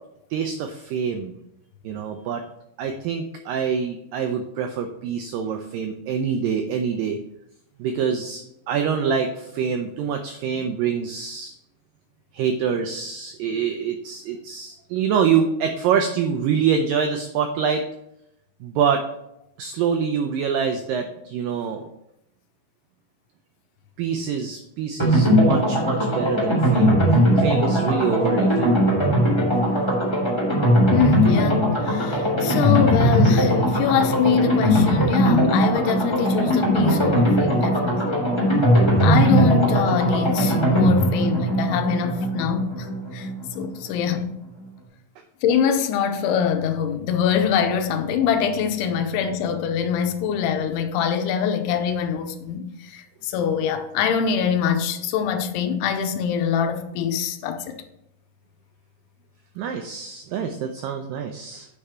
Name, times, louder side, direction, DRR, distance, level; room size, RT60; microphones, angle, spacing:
voice 1, 0.3-1.4 1.8-2.4 2.8-7.2 7.8-11.5 12.3-17.8 18.6-19.0 19.6-21.9 24.0-27.0 27.4-28.7 43.9-44.0 49.0-49.1 59.6-61.7, right 7 dB, 85° right, 1.9 m, -25 dB
sound 1, 25.0-43.6 43.9-44.0 44.2-44.3, equal, 10° left, 1.8 m, -19 dB
voice 2, 30.9-38.0 39.0-44.3 45.4-57.6, left 7 dB, 90° left, 2.8 m, -24 dB
8.8 x 4.9 x 4.3 m
omnidirectional pair, 4.6 m